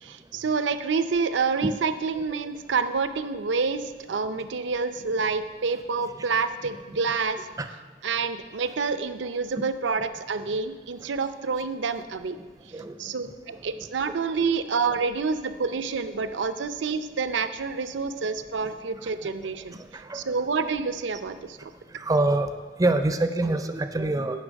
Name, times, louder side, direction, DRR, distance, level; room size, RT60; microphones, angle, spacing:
voice 1, 0.0-7.4 8.0-12.4 13.0-21.7, right 4 dB, 75° right, 11 dB, 0.5 m, -28 dB
voice 2, 12.7-13.7 14.0-14.1 18.6-19.3 19.7-20.4 21.9-22.5 22.8-24.4, right 2 dB, 20° right, 8 dB, 0.4 m, -27 dB
9.8 x 5.3 x 6.3 m, 1.4 s
head